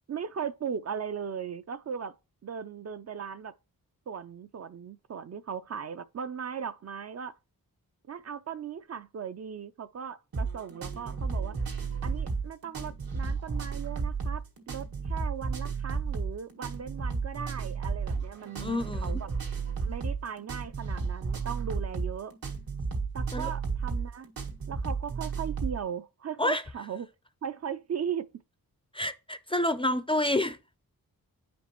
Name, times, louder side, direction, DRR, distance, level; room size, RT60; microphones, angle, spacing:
voice 1, 0.1-2.1 2.4-3.5 4.1-7.3 8.1-11.5 12.0-19.3 19.8-22.3 23.1-24.3 24.7-27.1 27.4-28.3, right 7 dB, 45° right, 0.4 m, -38 dB
sound 1, 10.3-25.8, right 4 dB, 75° right, 1.9 m, -33 dB
voice 2, 18.6-19.2 23.3-23.5 26.4-26.6 28.9-30.6, left 1 dB, 15° left, 0.4 m, -28 dB
9.9 x 5.2 x 3.0 m
wide cardioid pair, 165°, 35 cm